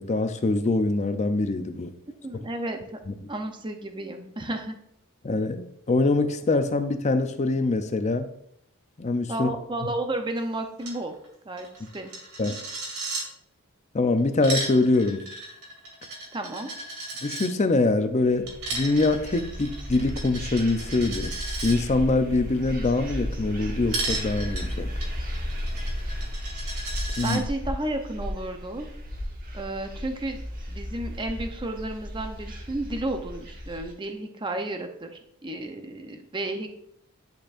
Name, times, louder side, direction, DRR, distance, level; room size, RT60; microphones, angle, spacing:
voice 1, 0.0-1.9 3.1-3.2 5.2-8.3 9.0-9.5 9.8-9.9 12.4-12.6 13.9-15.2 17.2-21.3 21.6-24.9 27.2-27.4, left 2 dB, 30° left, 8 dB, 0.5 m, -24 dB
voice 2, 2.1-3.0 3.3-4.8 9.3-11.1 11.4-11.7 11.9-12.1 16.3-16.7 27.2-28.9 29.5-30.4 30.7-35.1 35.4-36.7, right 1 dB, 20° right, 5 dB, 0.6 m, -32 dB
Coin (dropping), 10.8-11.0 11.2-11.3 11.6-13.3 14.2-17.5 18.5-21.8 23.9-27.4, right 2 dB, 75° right, 2.1 m, -35 dB
sound 1, 18.2-33.9, equal, 40° right, 1.3 m, -34 dB
10.5 x 4.3 x 2.5 m, 0.73 s
head